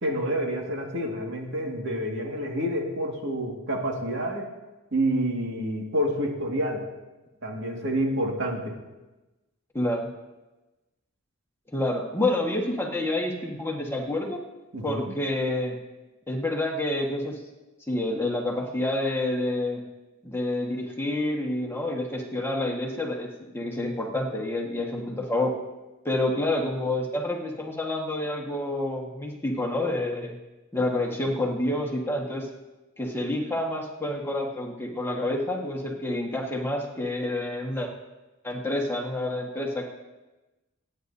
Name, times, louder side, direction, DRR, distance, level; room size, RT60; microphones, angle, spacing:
voice 1, 0.0-4.5 4.9-6.9 7.4-8.8 14.7-15.1, right 1 dB, 60° right, 0 dB, 2.0 m, -28 dB
voice 2, 9.7-10.1 11.7-14.4 14.8-15.8 16.3-17.4 17.9-19.8 20.2-23.3 23.5-25.5 26.0-30.3 30.7-32.5 33.0-37.9 38.4-39.8, left 1 dB, 10° left, 0 dB, 1.5 m, -28 dB
28.0 x 9.6 x 2.7 m, 1.1 s
head